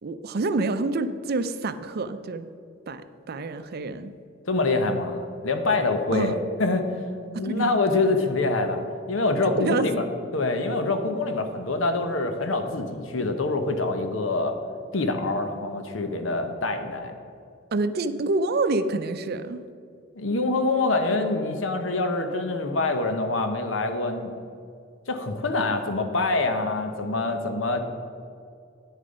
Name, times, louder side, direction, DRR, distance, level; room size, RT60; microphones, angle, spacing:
voice 1, 0.0-2.5 2.9-3.0 3.3-4.1 6.1-6.3 7.4-7.7 9.6-9.9 17.7-19.6, right 3 dB, 55° right, 12 dB, 0.5 m, -27 dB
voice 2, 4.5-6.8 7.3-8.8 9.1-10.0 10.3-14.6 14.9-17.1 20.1-24.3 25.1-27.8, left 3 dB, 80° left, 7 dB, 0.9 m, -25 dB
9.4 x 6.7 x 5.3 m, 2.4 s
head